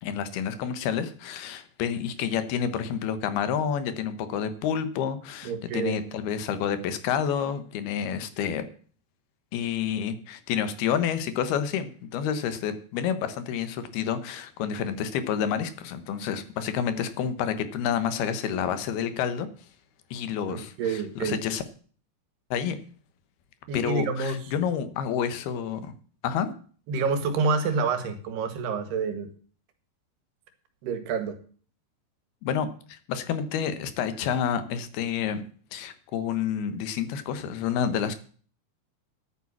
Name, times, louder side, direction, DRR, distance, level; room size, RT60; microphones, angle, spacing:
voice 1, 0.0-8.7 9.5-19.5 20.1-21.6 22.5-22.8 23.7-25.9 26.2-26.5 32.4-35.4 35.7-38.2, left 8 dB, 75° left, 11 dB, 3.2 m, -29 dB
voice 2, 5.4-6.0 20.5-21.4 23.7-24.4 26.9-29.3 30.8-31.4, right 4 dB, 80° right, 10 dB, 3.7 m, -28 dB
11.0 x 9.2 x 7.2 m, 0.43 s
omnidirectional pair, 4.6 m